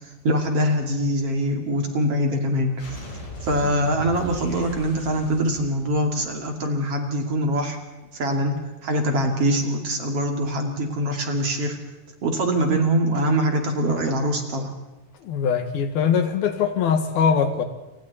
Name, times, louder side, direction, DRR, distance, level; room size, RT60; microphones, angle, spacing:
voice 1, 0.2-3.0 3.4-7.8 8.1-11.8 12.2-14.7, equal, 45° right, 3 dB, 3.2 m, -23 dB
sound 1, 2.8-6.5, left 1 dB, 55° left, 6.5 m, -38 dB
voice 2, 15.2-17.6, left 7 dB, 80° left, 7 dB, 3.7 m, -22 dB
29.0 x 26.0 x 4.2 m, 1.1 s
omnidirectional pair, 4.3 m